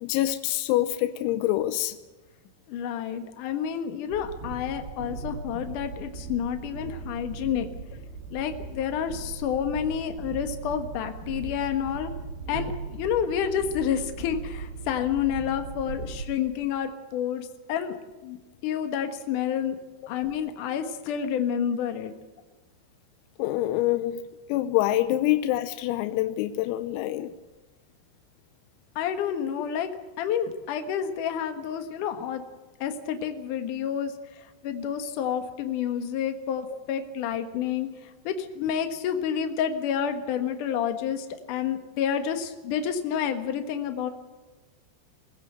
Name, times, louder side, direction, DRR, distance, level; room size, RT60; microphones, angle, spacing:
voice 1, 0.0-2.0 23.4-27.3 36.7-36.8, left 14 dB, 90° left, 10 dB, 3.5 m, -26 dB
voice 2, 2.7-7.7 8.3-12.1 12.5-18.0 18.2-18.4 18.6-19.8 20.1-22.1 29.0-29.9 30.2-32.4 32.8-44.1, left 8 dB, 75° left, 7 dB, 1.9 m, -29 dB
Train, 4.1-16.3, right 4 dB, 80° right, 6.7 m, -38 dB
21.5 x 16.0 x 7.9 m, 1.2 s
omnidirectional pair, 5.9 m